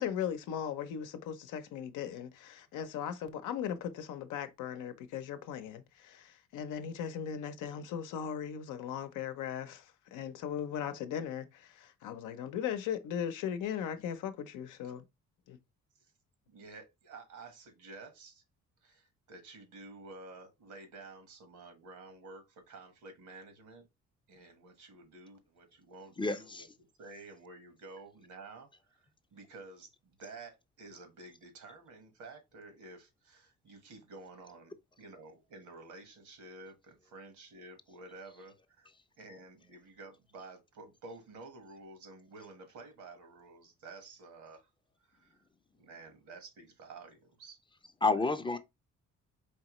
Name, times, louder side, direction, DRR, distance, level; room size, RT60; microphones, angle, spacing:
voice 1, 0.0-15.0 15.5-15.6, left 8 dB, 90° left, 0.7 m, -38 dB
voice 2, 16.5-18.4 18.8-23.8 24.3-26.7 27.0-29.0 29.3-38.9 39.2-44.7 45.1-45.3 45.8-47.6 48.5-48.6, right 3 dB, 75° right, 1.4 m, -51 dB
voice 3, 26.2-26.7 48.0-48.6, left 3 dB, 15° left, 0.5 m, -29 dB
4.6 x 2.9 x 3.0 m
cardioid pair, 90°, 30 cm